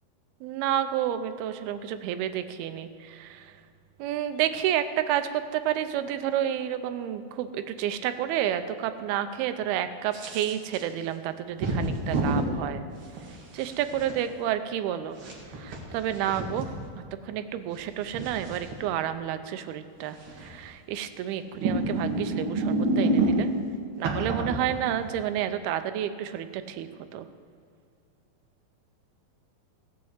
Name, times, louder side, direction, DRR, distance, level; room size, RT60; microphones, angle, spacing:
voice 1, 0.4-3.6 4.0-12.8 13.5-15.2 15.5-16.8 17.2-23.5 24.0-27.3, right 10 dB, 85° right, 10 dB, 2.6 m, -30 dB
sound 1, 10.1-10.8 11.6-12.5 13.2-14.1 15.1-16.7 17.8-18.7 20.2-20.6 21.5-23.6 24.0-25.2, right 2 dB, 45° right, 1.8 m, -28 dB
16.0 x 6.8 x 8.0 m, 2.3 s
omnidirectional pair, 4.4 m